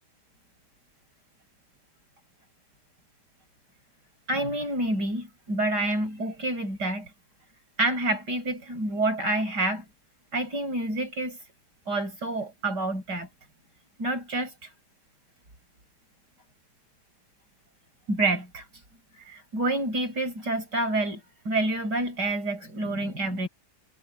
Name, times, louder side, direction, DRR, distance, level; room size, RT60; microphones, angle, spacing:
voice 1, 4.3-7.1 7.8-9.8 10.3-11.4 11.9-13.3 14.0-14.7 18.1-18.6 19.2-23.5, right 2 dB, 90° right, 7.7 m, -28 dB
omnidirectional pair, 1.8 m